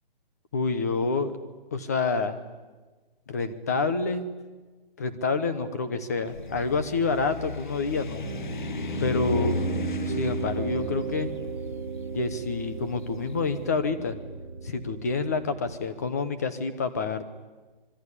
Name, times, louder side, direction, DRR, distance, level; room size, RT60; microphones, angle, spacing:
voice 1, 0.5-1.3 1.7-2.4 3.3-4.3 5.0-8.2 9.0-9.6 10.1-11.3 12.1-14.2 14.6-17.2, left 4 dB, 15° left, 10 dB, 0.9 m, -28 dB
sound 1, 6.2-13.4, left 5 dB, 55° left, 1.5 m, -35 dB
Piano, 8.2-15.7, right 6 dB, 30° right, 1.6 m, -35 dB
26.0 x 22.5 x 10.0 m, 1.3 s
hypercardioid pair, 180°, 29 cm